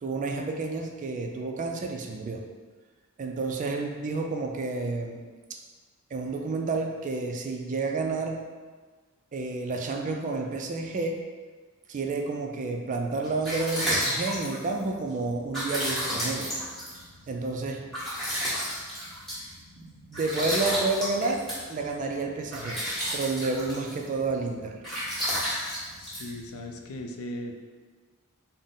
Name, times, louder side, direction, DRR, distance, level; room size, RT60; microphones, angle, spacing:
voice 1, 0.0-2.4 3.2-5.2 5.5-5.6 6.1-8.4 9.3-11.2 11.9-16.5 17.3-17.9 19.8-22.8 23.1-24.8, right 3 dB, 35° right, 2 dB, 0.3 m, -30 dB
sound 1, 13.2-27.0, equal, ahead, 1.4 m, -33 dB
voice 2, 26.0-27.5, left 1 dB, 65° left, 3 dB, 0.4 m, -38 dB
3.8 x 2.0 x 3.7 m, 1.4 s
head